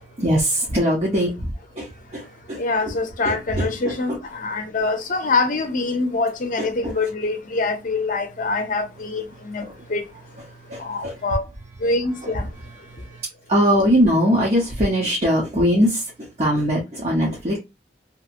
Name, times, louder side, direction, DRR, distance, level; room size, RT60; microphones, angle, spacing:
voice 1, 0.2-2.6 3.2-4.2 6.6-6.9 9.6-9.7 10.7-11.1 12.2-17.6, equal, 40° right, 0.8 m, -22 dB
voice 2, 2.6-4.1 4.4-9.6 9.9-10.0 10.8-11.4 11.8-12.4, left 3 dB, 50° left, 0.6 m, -24 dB
2.9 x 2.6 x 2.5 m
head